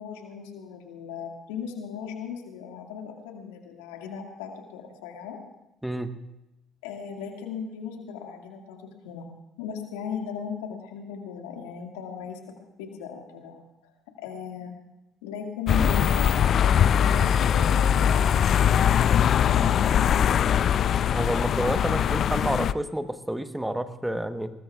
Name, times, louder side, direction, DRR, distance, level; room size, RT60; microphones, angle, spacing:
voice 1, 0.0-5.4 6.8-9.3 9.6-12.4 12.8-13.9 14.2-14.7 15.2-20.9, left 6 dB, 80° left, 2 dB, 2.1 m, -37 dB
sound 1, 15.7-22.7, left 9 dB, 55° left, 0.5 m, -21 dB
voice 2, 21.1-24.5, right 1 dB, 5° right, 9 dB, 1.2 m, -29 dB
21.5 x 20.0 x 2.4 m, 0.93 s
hypercardioid pair, 55°, 0 cm